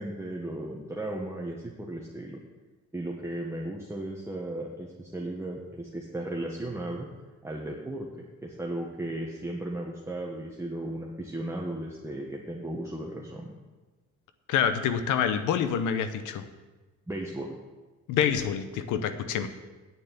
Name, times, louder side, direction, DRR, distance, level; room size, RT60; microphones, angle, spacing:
voice 1, 0.0-2.4 2.9-7.1 7.4-13.6 17.1-17.6, right 1 dB, 10° right, -2 dB, 1.4 m, -35 dB
voice 2, 14.5-16.4 18.1-19.5, left 8 dB, 90° left, 10 dB, 0.9 m, -27 dB
9.3 x 6.7 x 8.2 m, 1.2 s
cardioid pair, 90°, 30 cm